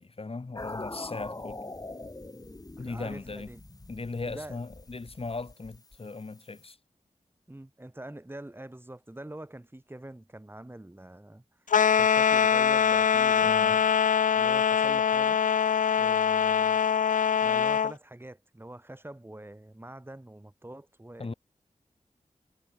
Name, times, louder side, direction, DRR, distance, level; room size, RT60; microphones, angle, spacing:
voice 1, 0.0-1.6 2.8-3.5 3.9-6.8 13.4-13.8 21.2-21.3, left 3 dB, 45° left, 4.0 m, -38 dB
sound 1, 0.6-6.7, left 2 dB, 30° left, 7.7 m, -43 dB
voice 2, 2.8-3.6 4.2-4.6 7.5-11.4 11.9-13.9 14.3-15.4 16.0-16.8 17.4-21.3, right 1 dB, 15° right, 4.6 m, -44 dB
sound 2, 11.7-17.9, left 7 dB, 80° left, 0.4 m, -23 dB
wide cardioid pair, 90°, 13 cm